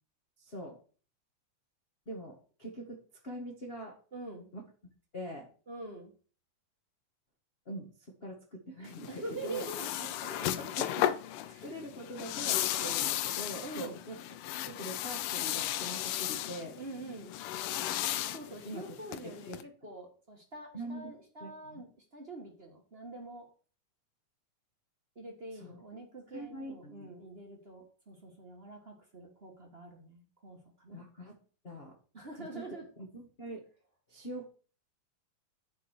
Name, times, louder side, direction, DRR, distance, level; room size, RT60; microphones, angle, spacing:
voice 1, 0.4-0.8 2.1-3.9 4.5-4.6 5.1-5.5 7.6-7.9 8.2-9.6 10.2-11.4 11.6-14.2 14.4-16.8 17.5-17.6 18.6-18.8 19.5-19.6 20.7-21.1 21.4-21.8 25.6-25.7 26.3-27.1 30.9-31.3 31.6-31.9 32.4-33.6 34.1-34.5, right 1 dB, 30° left, -1 dB, 1.0 m, -43 dB
voice 2, 4.1-4.5 5.7-6.1 9.1-10.5 11.4-11.8 13.6-14.0 16.7-17.3 18.1-23.5 25.1-31.0 32.1-32.9, right 2 dB, 35° right, 1 dB, 0.9 m, -45 dB
sound 1, 8.9-19.6, left 13 dB, 85° left, 2.3 m, -35 dB
10.0 x 5.0 x 6.4 m, 0.39 s
omnidirectional pair, 3.8 m